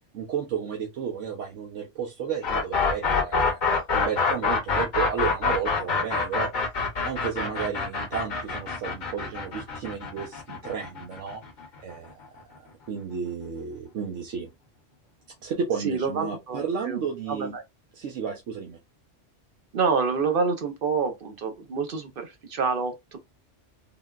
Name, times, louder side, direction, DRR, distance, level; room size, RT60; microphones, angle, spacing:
voice 1, 0.1-3.6 3.9-6.5 7.0-11.4 11.8-12.1 12.9-14.5 15.4-17.5 17.9-18.8, right 7 dB, 80° right, 1.0 m, -32 dB
sound 1, 2.4-12.3, left 4 dB, 45° left, 0.9 m, -26 dB
voice 2, 15.8-17.0 17.3-17.6 19.7-23.2, right 5 dB, 55° right, 0.7 m, -27 dB
3.6 x 2.2 x 2.2 m
omnidirectional pair, 1.2 m